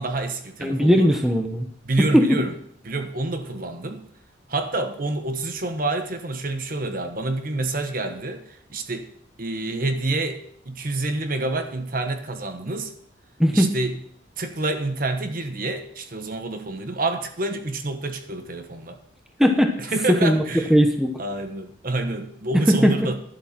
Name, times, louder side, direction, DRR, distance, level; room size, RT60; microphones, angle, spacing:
voice 1, 0.0-1.1 1.9-2.5 2.8-4.0 4.5-8.4 8.7-9.1 9.4-12.9 13.5-13.9 14.4-19.0 19.8-20.7 21.2-23.2, right 2 dB, 45° right, 7 dB, 1.1 m, -28 dB
voice 2, 0.6-1.7 2.1-2.4 13.4-13.7 19.4-19.7 20.1-20.4 20.7-21.1 22.5-23.1, equal, ahead, 4 dB, 1.0 m, -18 dB
11.5 x 8.0 x 5.8 m, 0.67 s
head